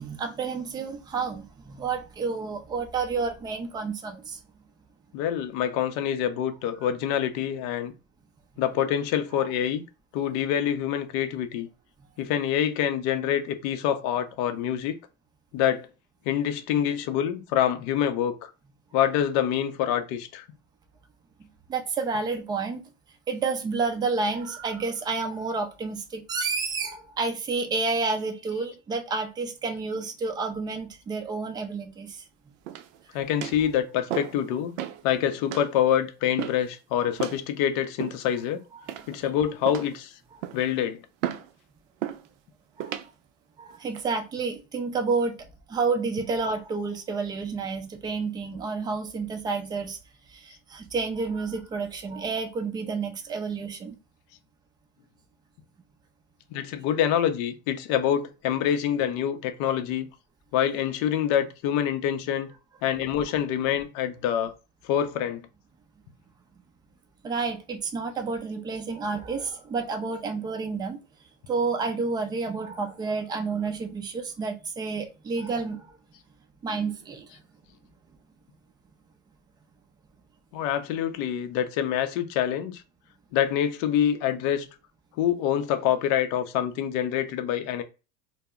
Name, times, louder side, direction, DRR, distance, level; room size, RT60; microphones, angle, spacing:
voice 1, 0.0-4.4 21.4-22.8 23.3-32.2 38.8-38.9 42.8-43.0 43.6-50.0 50.3-53.9 67.2-71.0 71.5-75.9 76.6-77.3, right 4 dB, 10° right, 0.4 m, -30 dB
voice 2, 5.1-7.9 8.6-9.8 10.1-11.7 12.2-15.0 15.5-15.9 16.3-18.5 18.9-20.4 33.1-34.8 35.0-38.6 39.1-40.1 40.5-41.0 56.5-60.1 60.5-62.5 62.8-64.5 64.8-65.4 80.5-82.8 83.3-84.7 85.2-87.8, left 9 dB, 50° left, 0.5 m, -26 dB
sound 1, 32.7-33.0 33.4-33.7 34.1-34.4 34.8-35.0 35.5-35.7 36.4-36.7 37.2-37.4 38.0-38.4 38.9-39.3 39.6-40.0 40.4-40.7 41.2-41.5 42.0-42.3 42.8-43.1 43.7-44.0, right 11 dB, 70° right, 0.5 m, -34 dB
2.1 x 2.0 x 3.5 m
hypercardioid pair, 100°, 38 cm